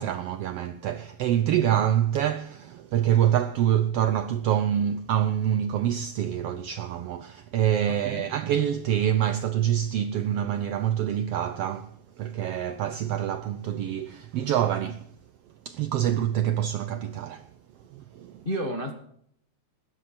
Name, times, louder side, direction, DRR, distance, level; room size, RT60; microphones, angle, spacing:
voice 1, 0.0-11.9 12.2-15.1 15.7-17.4 17.9-18.4, right 10 dB, 80° right, 1.4 m, -26 dB
voice 2, 7.9-8.3 18.4-18.9, equal, 40° left, 0.8 m, -31 dB
20.0 x 10.0 x 4.3 m
omnidirectional pair, 3.4 m